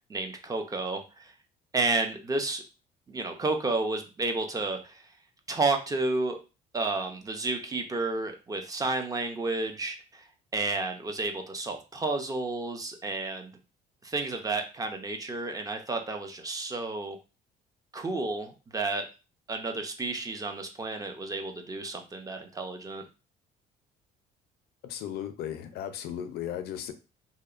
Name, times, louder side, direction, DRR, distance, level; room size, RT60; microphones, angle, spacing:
voice 1, 0.1-1.3 1.7-2.6 3.1-5.0 5.5-6.4 6.7-10.2 10.5-13.5 14.0-17.2 17.9-19.1 19.5-23.0, right 3 dB, 20° right, 4 dB, 0.4 m, -31 dB
voice 2, 24.8-26.9, left 10 dB, 70° left, 9 dB, 0.4 m, -36 dB
2.7 x 2.0 x 2.4 m, 0.31 s
cardioid pair, 110°, 17 cm